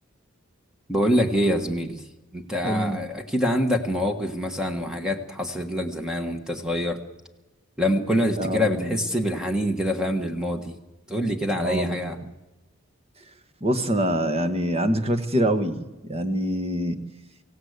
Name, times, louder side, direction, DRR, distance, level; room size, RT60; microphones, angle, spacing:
voice 1, 0.9-2.0 2.3-7.0 7.8-10.7 11.1-12.2, equal, 5° right, 4 dB, 1.3 m, -25 dB
voice 2, 2.6-3.0 8.4-9.0 11.6-12.1 13.6-17.0, right 1 dB, 30° right, 9 dB, 1.3 m, -25 dB
24.5 x 16.5 x 8.1 m, 1.1 s
head